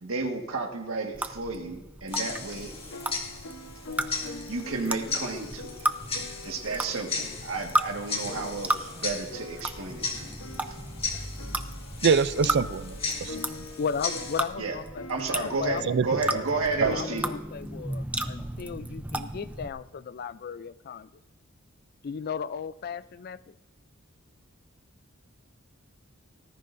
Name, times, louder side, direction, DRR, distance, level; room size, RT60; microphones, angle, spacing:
voice 1, 0.0-2.7 4.5-5.7 6.4-10.4 10.7-10.8 14.6-14.8 15.1-17.3, right 3 dB, 85° right, 3 dB, 1.6 m, -32 dB
sound 1, 1.1-19.7, right 1 dB, 5° right, 0.5 m, -35 dB
Tick-tock, 2.1-14.4, left 4 dB, 30° left, 2.1 m, -37 dB
sound 2, 2.2-17.4, left 3 dB, 75° left, 0.9 m, -44 dB
voice 2, 12.0-13.6 15.9-16.1 16.8-16.9, right 6 dB, 55° right, 17 dB, 0.4 m, -25 dB
voice 3, 13.8-15.9 16.8-21.1 22.0-23.5, left 6 dB, 50° left, 16 dB, 0.4 m, -35 dB
19.0 x 14.0 x 2.6 m, 1.1 s
head